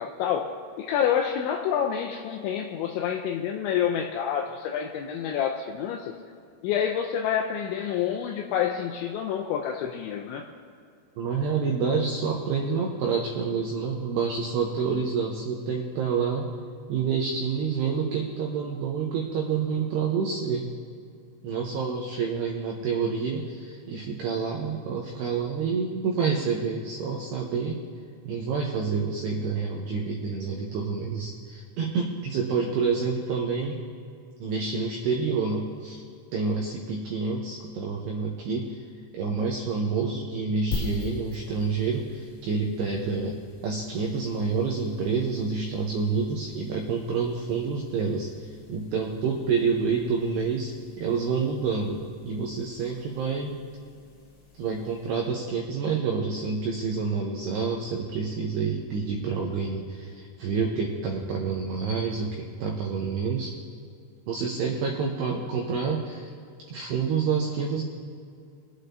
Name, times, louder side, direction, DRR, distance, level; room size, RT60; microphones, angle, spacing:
voice 1, 0.0-6.1 6.6-10.5, left 8 dB, 85° left, 2 dB, 2.6 m, -28 dB
voice 2, 11.2-16.5 16.9-20.7 21.4-27.8 28.3-33.8 34.4-36.0 36.3-38.8 39.1-43.4 43.6-53.6 54.6-63.5 64.3-66.3 66.7-67.8, right 5 dB, 85° right, 0 dB, 2.3 m, -28 dB
sound 1, 40.7-55.4, left 3 dB, 50° left, 3.2 m, -43 dB
23.0 x 8.2 x 2.6 m, 2.4 s
omnidirectional pair, 5.8 m